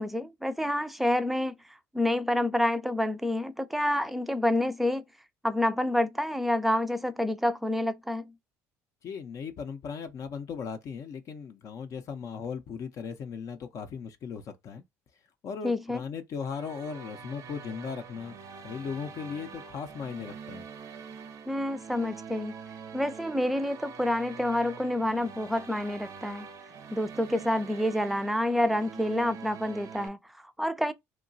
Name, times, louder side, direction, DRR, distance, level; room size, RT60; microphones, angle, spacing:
voice 1, 0.0-1.5 1.9-5.0 5.4-8.3 15.6-16.0 21.5-22.5 22.9-26.5 26.9-30.9, left 1 dB, ahead, 0.4 m, -28 dB
voice 2, 9.0-14.8 15.4-18.4 18.6-20.7, left 6 dB, 55° left, 0.5 m, -37 dB
sound 1, 16.4-30.1, right 6 dB, 60° right, 0.5 m, -45 dB
2.9 x 2.2 x 2.5 m
supercardioid pair, 80°, 7 cm